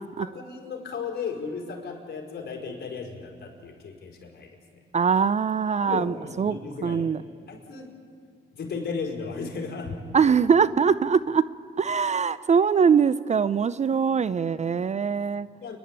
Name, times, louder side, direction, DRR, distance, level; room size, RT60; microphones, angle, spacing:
voice 1, 0.2-4.8 5.8-7.0 7.5-7.9 8.5-10.0 15.6-15.8, left 5 dB, 55° left, 1 dB, 4.9 m, -35 dB
voice 2, 4.9-6.6 6.8-7.2 10.1-11.4 11.8-15.5, right 6 dB, 35° right, 17 dB, 0.5 m, -22 dB
29.0 x 11.0 x 8.9 m, 2.2 s
cardioid pair, 90°, 20 cm